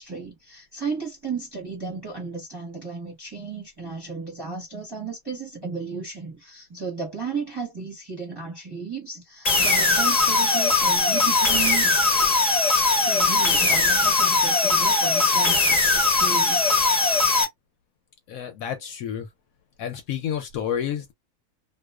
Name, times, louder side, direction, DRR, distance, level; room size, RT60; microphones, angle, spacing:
voice 1, 0.0-12.0 13.0-16.6, right 5 dB, 20° right, 0.8 m, -34 dB
sound 1, 9.4-17.4, left 3 dB, 40° left, 0.6 m, -20 dB
voice 2, 18.3-19.3 19.8-21.1, left 9 dB, 70° left, 0.9 m, -30 dB
2.4 x 2.3 x 2.2 m
omnidirectional pair, 1.7 m